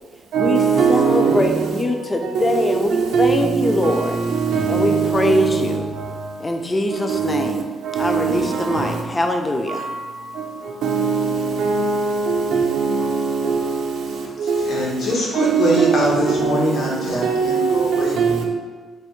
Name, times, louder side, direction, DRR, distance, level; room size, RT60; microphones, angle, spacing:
voice 1, 0.3-1.4 2.4-2.7 3.1-3.9 4.5-5.0 5.3-5.4 7.1-7.2 8.0-8.2 10.8-11.2 11.6-11.7 12.5-13.0 15.4-16.0 16.4-16.5 17.2-17.7 18.2-18.4, right 6 dB, 80° right, 0.4 m, -19 dB
voice 2, 0.9-4.2 4.7-5.9 6.4-7.7 8.0-9.9, left 1 dB, 20° left, 0.3 m, -22 dB
voice 3, 14.4-18.2, left 1 dB, 70° left, 0.8 m, -23 dB
3.2 x 2.1 x 3.0 m
cardioid pair, 90°, 0 cm